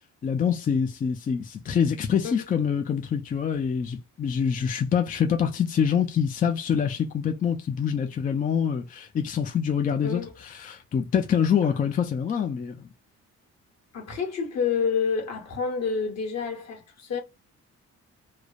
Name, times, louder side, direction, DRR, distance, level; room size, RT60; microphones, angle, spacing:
voice 1, 0.2-12.9, left 7 dB, 30° left, 0.4 m, -25 dB
voice 2, 13.9-17.2, left 6 dB, 60° left, 1.2 m, -28 dB
3.1 x 2.0 x 2.3 m
cardioid pair, 120°, 30 cm